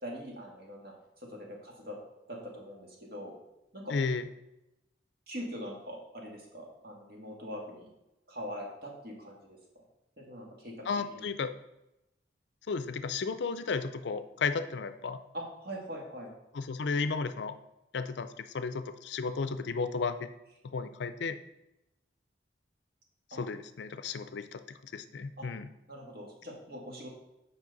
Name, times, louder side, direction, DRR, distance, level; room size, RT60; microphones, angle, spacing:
voice 1, 0.0-2.0 2.3-3.3 3.7-3.9 5.3-7.9 8.3-9.8 10.2-10.9 11.1-11.2 15.3-16.3 23.3-23.4 25.4-25.5 25.9-27.1, equal, 55° right, -1 dB, 1.7 m, -42 dB
voice 2, 3.9-4.2 10.9-11.5 12.7-15.2 16.5-17.6 17.9-20.3 20.7-21.4 23.4-25.7, left 4 dB, 75° left, 11 dB, 0.4 m, -33 dB
7.4 x 5.1 x 4.0 m, 0.92 s
head